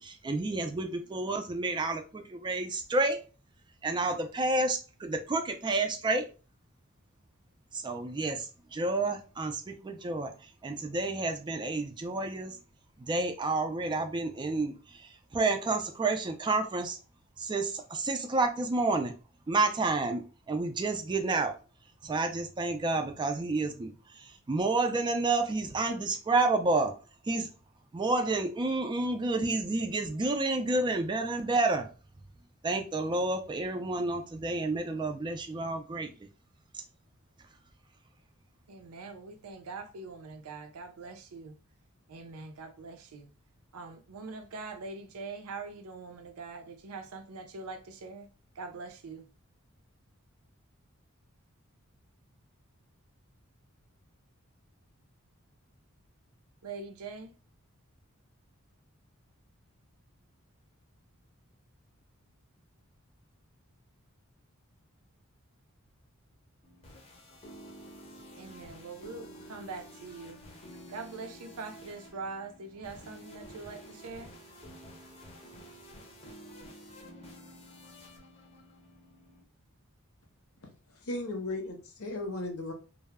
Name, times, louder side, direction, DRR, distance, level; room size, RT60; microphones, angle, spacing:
voice 1, 0.0-3.2 3.8-6.3 7.7-10.3 10.6-12.6 13.0-17.0 17.4-19.1 19.5-21.5 22.0-26.9 27.3-27.5 27.9-31.9 32.6-36.1, right 2 dB, 20° right, 0.3 m, -30 dB
voice 2, 38.7-41.6 42.1-43.3 43.7-48.3 48.5-49.3 56.6-57.3 68.4-70.4 70.9-74.3, right 4 dB, 80° right, 0.5 m, -43 dB
sound 1, 66.6-79.4, equal, 30° left, 0.6 m, -50 dB
voice 3, 81.0-82.7, left 2 dB, 70° left, 0.7 m, -36 dB
2.2 x 2.0 x 3.4 m
head